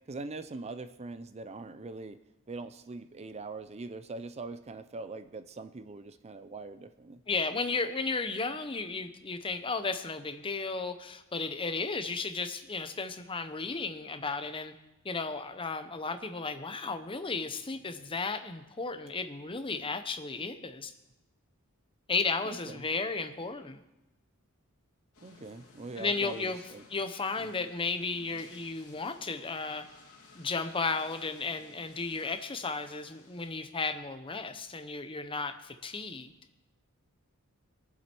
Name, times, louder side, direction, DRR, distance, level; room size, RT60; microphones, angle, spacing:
voice 1, 0.1-2.2 2.5-7.2 22.4-22.9 25.2-26.8 27.4-27.5, right 3 dB, 30° right, 11 dB, 0.5 m, -42 dB
voice 2, 7.3-14.7 15.0-20.9 22.1-23.8 26.0-26.6 26.9-29.8 30.3-36.3, left 4 dB, 25° left, 8 dB, 0.9 m, -34 dB
sound 1, 25.1-33.5, left 3 dB, 80° left, 2.6 m, -57 dB
22.0 x 7.5 x 4.5 m, 0.92 s
head